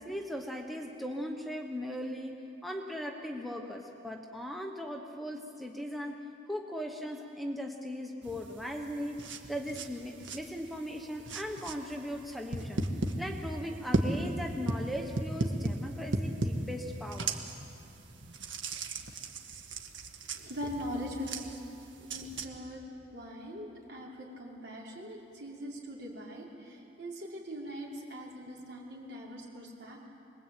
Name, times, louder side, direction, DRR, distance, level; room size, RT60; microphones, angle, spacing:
voice 1, 0.0-6.2 6.5-12.9 13.2-17.3, equal, ahead, 2 dB, 1.3 m, -38 dB
sound 1, 8.2-22.5, right 2 dB, 90° right, 1.9 m, -37 dB
voice 2, 20.3-21.4 22.0-22.8 23.1-30.0, equal, 60° right, -3 dB, 5.7 m, -41 dB
25.0 x 22.0 x 8.9 m, 2.9 s
head